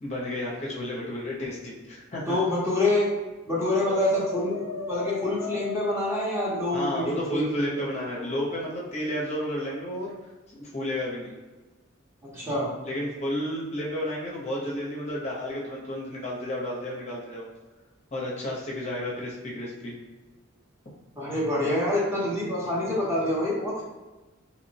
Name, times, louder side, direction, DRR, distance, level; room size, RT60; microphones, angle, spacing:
voice 1, 0.0-2.4 6.7-10.1 10.6-11.3 12.8-17.5 18.1-20.0, left 1 dB, 35° left, -4 dB, 0.5 m, -32 dB
voice 2, 2.3-3.1 3.5-7.5 12.3-12.7 21.2-23.8, left 1 dB, 15° right, -6 dB, 0.6 m, -26 dB
Brass instrument, 3.8-6.6 8.1-8.7, left 4 dB, 85° left, 0.4 m, -36 dB
2.8 x 2.0 x 2.7 m, 1.2 s
head